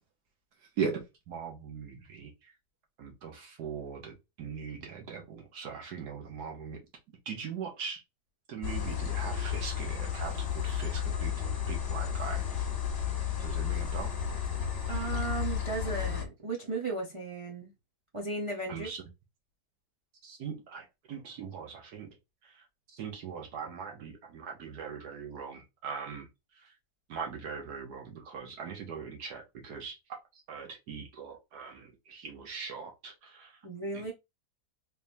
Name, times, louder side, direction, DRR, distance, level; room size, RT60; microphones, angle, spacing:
voice 1, 1.3-2.3 3.0-6.8 7.3-8.0 8.5-11.3 11.7-12.6 13.4-14.1 18.7-19.0 20.2-22.1 22.9-26.3 27.1-30.0 30.5-33.5 33.9-34.1, right 6 dB, 70° right, 1.4 m, -40 dB
sound 1, 8.6-16.2, left 9 dB, 45° left, 1.1 m, -32 dB
voice 2, 14.9-17.7 18.1-18.9 33.6-34.1, right 3 dB, 30° right, 0.6 m, -35 dB
3.4 x 3.4 x 2.5 m
omnidirectional pair, 1.8 m